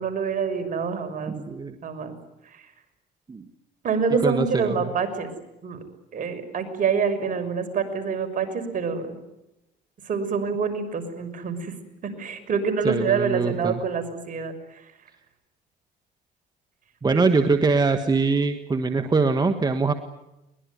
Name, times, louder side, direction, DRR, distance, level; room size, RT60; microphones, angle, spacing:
voice 1, 0.0-1.3 1.8-2.1 2.5-2.7 3.8-5.3 5.6-5.8 6.1-9.2 10.0-11.7 12.0-14.9 17.1-17.3, right 5 dB, 50° right, 8 dB, 6.0 m, -26 dB
voice 2, 1.2-1.7 3.3-3.4 4.2-4.9 12.8-13.8 17.0-19.9, right 4 dB, 25° right, 8 dB, 1.7 m, -23 dB
23.0 x 21.5 x 9.6 m, 0.92 s
cardioid pair, 95°, 17 cm